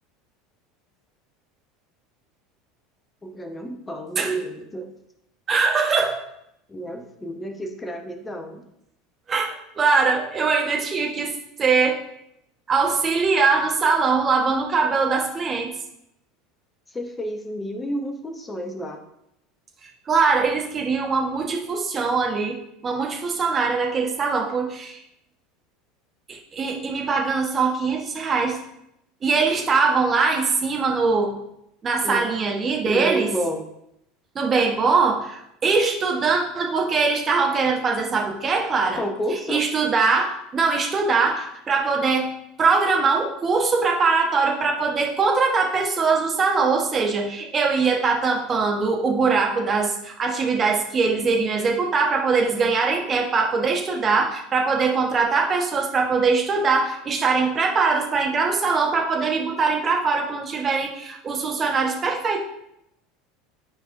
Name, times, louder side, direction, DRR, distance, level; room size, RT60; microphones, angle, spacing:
voice 1, 3.2-4.9 6.7-8.7 16.9-19.0 32.0-32.3 32.8-33.6 38.9-39.7, right 1 dB, 15° left, 5 dB, 1.1 m, -30 dB
voice 2, 5.5-6.2 9.3-12.0 12.7-15.7 19.8-25.0 26.3-28.6 29.2-31.4 31.8-33.3 34.3-39.0 39.5-42.3 42.6-62.4, right 4 dB, 30° right, 1 dB, 1.3 m, -22 dB
10.0 x 4.7 x 2.7 m, 0.80 s
figure-of-eight pair, 75°, 0 cm